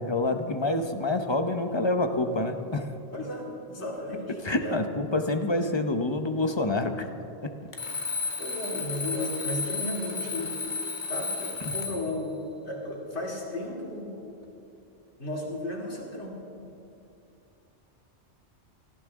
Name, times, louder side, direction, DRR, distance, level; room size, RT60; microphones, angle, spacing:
voice 1, 0.0-2.9 4.4-7.1 11.6-11.7, left 2 dB, 25° left, 6 dB, 0.8 m, -27 dB
voice 2, 3.1-4.7 8.4-10.7 11.1-14.5 15.2-16.7, left 1 dB, 70° left, -3 dB, 3.0 m, -35 dB
Alarm, 7.7-12.2, left 4 dB, 40° left, 1.4 m, -33 dB
18.5 x 14.5 x 3.7 m, 2.7 s
omnidirectional pair, 1.2 m